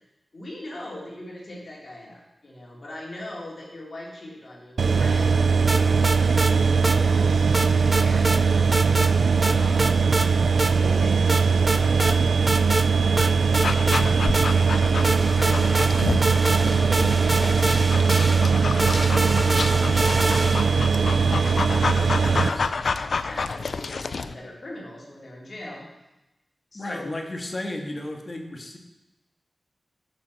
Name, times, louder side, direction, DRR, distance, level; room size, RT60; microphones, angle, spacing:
voice 1, 0.3-5.7 6.1-8.7 9.5-10.0 10.7-12.3 13.2-14.3 14.7-21.4 21.8-22.7 23.0-25.9 26.7-27.2, left 1 dB, 50° left, -3 dB, 3.6 m, -40 dB
sound 1, 4.8-22.5, right 5 dB, 80° right, 0.5 m, -20 dB
sound 2, 5.7-6.5 6.8-7.0 7.5-8.4 8.7-9.1 9.4-10.3 10.6-10.7 11.3-12.2 12.5-12.9 13.2-14.7 15.0-20.8, right 2 dB, 25° right, 0.5 m, -27 dB
Dog, 13.6-24.3, left 4 dB, 75° left, 0.5 m, -30 dB
voice 2, 22.3-22.7 26.7-28.8, left 1 dB, 35° left, 2 dB, 1.8 m, -34 dB
11.5 x 6.7 x 6.6 m, 0.95 s
wide cardioid pair, 105°, 0 cm